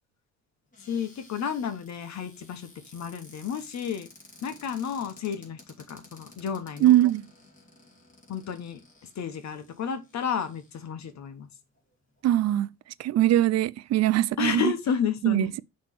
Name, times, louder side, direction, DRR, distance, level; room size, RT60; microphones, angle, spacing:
Cupboard open or close, 0.7-11.1 11.8-11.9 12.1-12.4, left 2 dB, 25° left, 2.6 m, -54 dB
voice 1, 0.8-4.1 4.4-5.6 5.9-6.9 8.3-8.8 9.1-11.5 14.4-15.5, left 7 dB, 65° left, 1.2 m, -31 dB
voice 2, 6.8-7.2 12.2-12.7 13.0-14.7 15.2-15.6, right 13 dB, 60° right, 0.4 m, -22 dB
6.0 x 3.3 x 5.8 m
cardioid pair, 90°, 30 cm